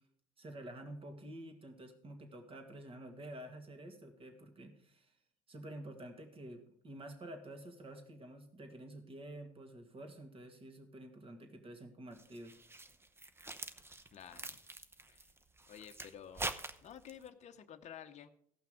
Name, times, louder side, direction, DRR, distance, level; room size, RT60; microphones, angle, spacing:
voice 1, 0.4-5.1 5.5-12.6, right 1 dB, 30° right, 5 dB, 2.1 m, -49 dB
sound 1, 12.1-17.3, right 2 dB, 15° right, 0.7 m, -45 dB
voice 2, 14.1-14.6 15.1-15.3 15.7-16.5 16.8-18.3, left 9 dB, 40° left, 8 dB, 0.8 m, -52 dB
15.5 x 5.8 x 5.0 m, 0.68 s
hypercardioid pair, 70°, 18 cm